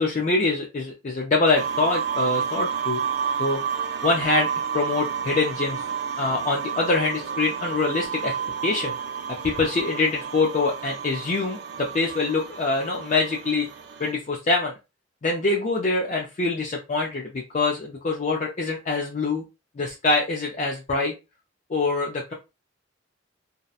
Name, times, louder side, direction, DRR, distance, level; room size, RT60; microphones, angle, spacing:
voice 1, 0.0-3.0 3.4-3.6 4.0-4.5 4.7-5.8 6.2-8.3 8.6-8.9 9.4-13.7 14.0-14.7 15.2-19.4 19.8-21.1 21.7-22.3, left 3 dB, 40° left, -1 dB, 0.4 m, -24 dB
sound 1, 1.5-14.1, right 7 dB, 60° right, 0.4 m, -30 dB
2.7 x 2.1 x 2.3 m, 0.27 s
head